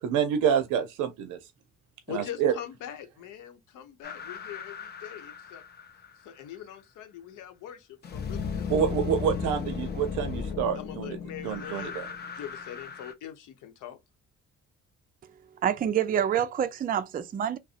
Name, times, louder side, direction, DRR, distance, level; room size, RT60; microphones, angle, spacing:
voice 1, 0.0-1.4 2.1-2.5 8.7-11.2 11.4-12.1, right 8 dB, 90° right, 0.5 m, -27 dB
voice 2, 2.1-5.6 6.2-9.5 10.7-12.0 12.3-14.0, left 10 dB, 90° left, 0.7 m, -43 dB
sound 1, 4.0-6.3 8.0-13.1, left 6 dB, 35° left, 0.5 m, -36 dB
voice 3, 15.6-17.6, right 9 dB, 30° right, 0.3 m, -27 dB
2.7 x 2.0 x 2.4 m
cardioid pair, 90°, 30 cm